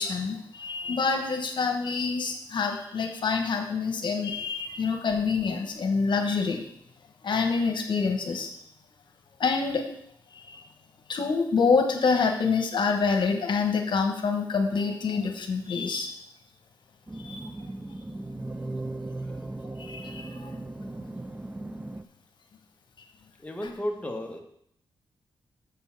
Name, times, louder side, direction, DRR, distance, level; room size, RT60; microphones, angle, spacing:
voice 1, 0.0-6.6 7.2-8.5 9.4-9.9 10.3-10.6 11.1-16.1 17.1-17.5 19.8-20.5, left 5 dB, 65° left, 4 dB, 1.2 m, -27 dB
sound 1, 17.1-22.0, right 2 dB, 15° right, 0.4 m, -37 dB
voice 2, 23.4-24.4, equal, 15° left, 2 dB, 1.1 m, -33 dB
7.3 x 5.5 x 5.8 m, 0.70 s
cardioid pair, 80°, 9 cm